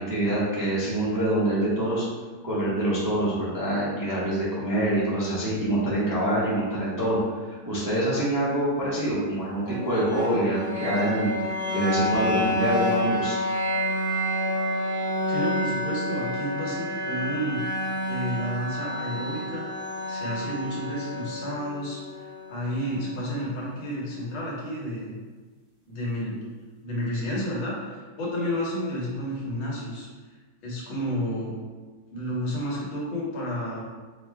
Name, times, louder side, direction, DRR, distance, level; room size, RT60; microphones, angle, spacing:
voice 1, 0.0-2.0 2.4-11.3 11.7-13.4, right 1 dB, 20° right, -8 dB, 0.5 m, -25 dB
sound 1, 9.7-23.6, left 1 dB, 70° right, 0.5 m, -29 dB
voice 2, 15.3-17.6 18.0-19.7 20.1-25.2 25.9-26.4 26.8-31.5 32.1-33.9, equal, 85° left, -5 dB, 1.9 m, -31 dB
5.2 x 2.2 x 3.3 m, 1.3 s
omnidirectional pair, 2.1 m